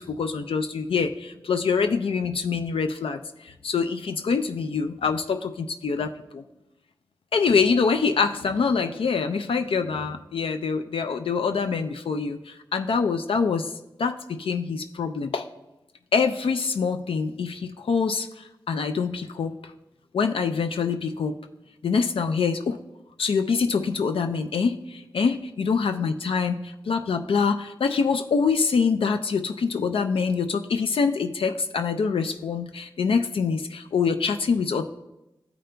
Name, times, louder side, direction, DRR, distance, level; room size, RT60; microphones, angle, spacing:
voice 1, 0.2-3.2 3.6-6.4 7.3-12.4 12.7-13.6 14.0-15.4 16.1-18.3 18.7-19.5 20.1-21.3 21.8-22.8 23.2-24.8 25.1-34.8, left 5 dB, 80° left, 7 dB, 0.4 m, -25 dB
14.0 x 5.1 x 2.2 m, 0.95 s
wide cardioid pair, 60°, 9 cm